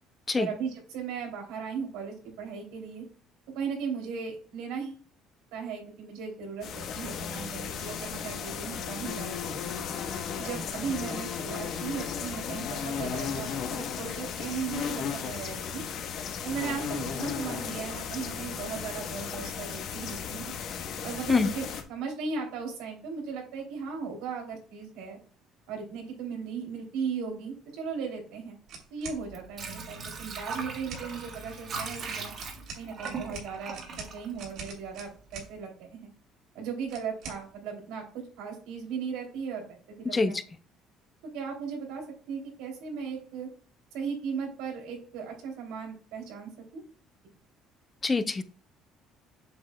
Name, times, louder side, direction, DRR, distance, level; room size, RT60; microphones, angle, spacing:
voice 1, 0.4-3.0 3.5-5.0 5.5-9.4 10.4-15.8 16.4-20.5 21.0-25.2 25.7-28.6 28.9-32.3 32.8-36.1 36.5-38.0 38.4-40.4 41.3-42.0 42.3-43.5 43.9-46.8, right 6 dB, 90° right, 1 dB, 2.9 m, -37 dB
sound 1, 6.6-21.8, left 7 dB, 60° left, 1.2 m, -35 dB
sound 2, 28.7-29.2 30.4-31.1 32.4-35.5 36.9-37.4, right 4 dB, 70° right, 3.0 m, -43 dB
Water / Sink (filling or washing), 29.2-35.1 35.4-35.5, right 4 dB, 45° right, 1.7 m, -39 dB
voice 2, 40.0-40.4 48.0-48.4, left 3 dB, 20° left, 11 dB, 0.6 m, -25 dB
7.9 x 6.3 x 2.2 m, 0.42 s
cardioid pair, 125°, 0 cm